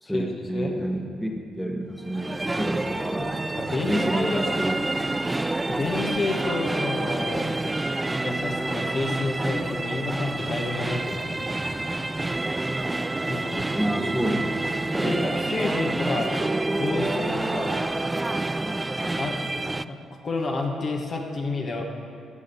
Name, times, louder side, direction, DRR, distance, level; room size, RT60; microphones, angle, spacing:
voice 1, 0.0-3.3 3.8-5.2 13.7-14.5 14.8-15.2, right 1 dB, ahead, 2 dB, 1.3 m, -29 dB
sound 1, 2.0-19.8, right 2 dB, 20° right, 0.3 m, -28 dB
voice 2, 3.6-4.4 5.7-7.5 8.2-11.5 13.3-13.6 15.0-17.8 19.2-19.4 19.9-20.0 20.2-21.8, left 3 dB, 50° left, 1 dB, 1.3 m, -30 dB
15.0 x 5.4 x 5.4 m, 2.3 s
hypercardioid pair, 45°, 0 cm